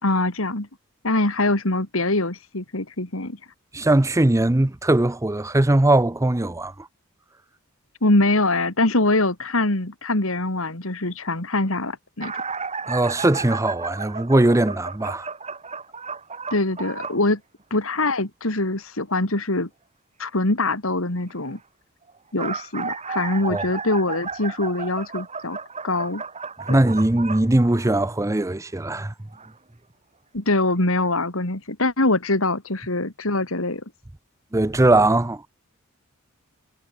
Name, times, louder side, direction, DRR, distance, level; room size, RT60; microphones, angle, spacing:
voice 1, 0.0-0.7 1.0-3.4 8.0-12.4 16.5-17.4 17.7-19.7 20.2-21.6 22.3-25.6 25.8-26.2 26.7-26.8 30.3-33.8, left 2 dB, 75° left, 3.0 m, -23 dB
voice 2, 3.7-6.9 12.9-15.3 23.5-23.6 26.7-29.1 34.5-35.5, right 1 dB, 15° right, 0.6 m, -20 dB
sound 1, 12.2-17.2 22.1-28.2 29.3-29.5 30.5-30.6 31.0-31.1, right 5 dB, 30° right, 6.8 m, -33 dB
head